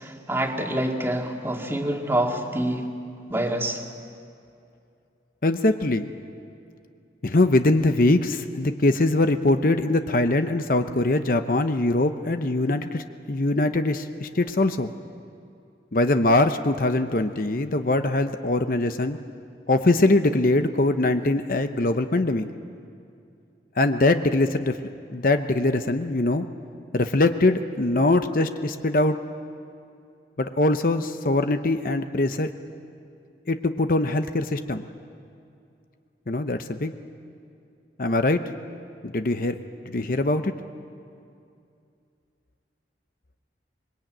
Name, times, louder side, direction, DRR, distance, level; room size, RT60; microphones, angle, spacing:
voice 1, 0.0-2.9 3.3-3.8, right 1 dB, 15° right, 1 dB, 2.0 m, -26 dB
voice 2, 5.4-6.1 7.2-14.9 15.9-19.2 19.7-22.5 23.8-24.8 25.1-26.5 26.9-29.2 30.4-32.5 33.5-34.8 36.3-36.9 38.0-38.4 39.0-39.6 39.9-40.5, left 2 dB, 50° left, 8 dB, 0.8 m, -22 dB
25.5 x 22.0 x 9.0 m, 2.5 s
head